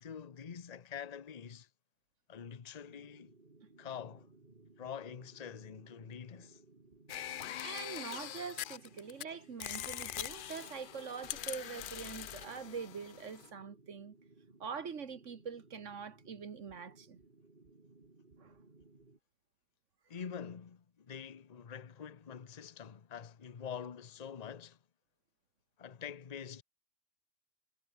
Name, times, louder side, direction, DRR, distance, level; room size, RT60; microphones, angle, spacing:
voice 1, 0.0-1.7 2.3-3.3 3.8-4.3 4.8-6.6 20.1-24.8 25.8-26.6, left 7 dB, 35° left, 0.9 m, -46 dB
sound 1, 2.8-19.2, right 3 dB, 40° right, 2.8 m, -61 dB
sound 2, 7.1-9.2 9.6-13.5, left 11 dB, 55° left, 0.6 m, -43 dB
voice 2, 7.6-14.2 14.6-17.2 18.4-18.6, right 6 dB, 75° right, 1.8 m, -44 dB
omnidirectional pair, 1.3 m